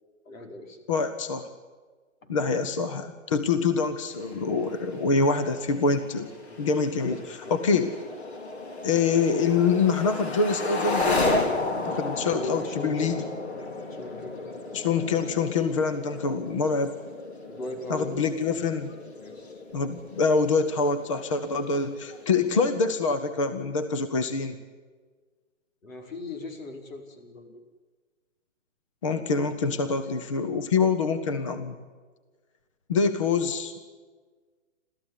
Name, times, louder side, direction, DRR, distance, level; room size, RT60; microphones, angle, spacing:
voice 1, 0.3-0.8 2.2-2.3 6.5-6.6 7.0-7.6 12.2-13.2 13.9-14.4 17.5-18.2 19.2-19.6 25.8-27.6, left 2 dB, 80° left, 4 dB, 5.2 m, -39 dB
voice 2, 0.9-1.5 2.3-6.3 6.6-7.2 7.5-7.9 8.8-11.4 11.8-13.2 14.7-16.9 17.9-18.9 19.7-24.6 29.0-31.8 32.9-33.7, left 4 dB, 25° left, 9 dB, 0.8 m, -25 dB
sound 1, 4.1-22.9, left 2 dB, 55° left, 4.6 m, -34 dB
30.0 x 14.0 x 9.9 m, 1.4 s
hypercardioid pair, 175°, 39 cm